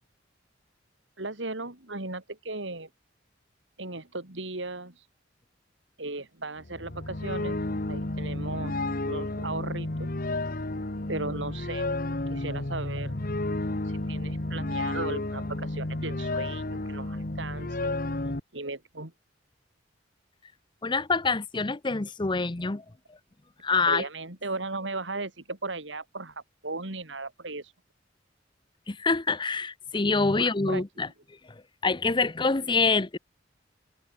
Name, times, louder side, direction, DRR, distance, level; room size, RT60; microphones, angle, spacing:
voice 1, 1.2-2.9 3.8-5.1 6.0-8.7 9.0-10.1 11.1-11.9 12.3-13.2 13.8-17.9 18.5-19.1 23.9-27.7 30.4-30.8, right 3 dB, 75° right, 3.5 m, -36 dB
sound 1, 6.6-18.4, left 2 dB, 50° left, 1.5 m, -31 dB
voice 2, 20.8-23.2 23.6-24.0 28.9-31.1 31.5-33.2, left 4 dB, 25° left, 0.7 m, -26 dB
head